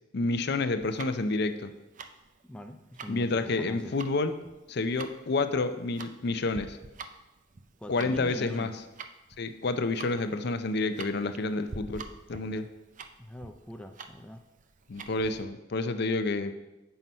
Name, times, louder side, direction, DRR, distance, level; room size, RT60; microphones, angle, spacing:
voice 1, 0.1-1.7 3.1-4.3 4.7-6.8 7.9-8.7 9.4-12.7 14.9-16.5, left 3 dB, 60° left, 10 dB, 0.6 m, -29 dB
Tick-tock, 0.8-15.4, right 4 dB, 45° right, 0.5 m, -46 dB
voice 2, 2.4-4.0 7.8-8.7 13.2-14.4, equal, 5° left, 5 dB, 0.4 m, -43 dB
7.6 x 5.6 x 5.4 m, 1.0 s
head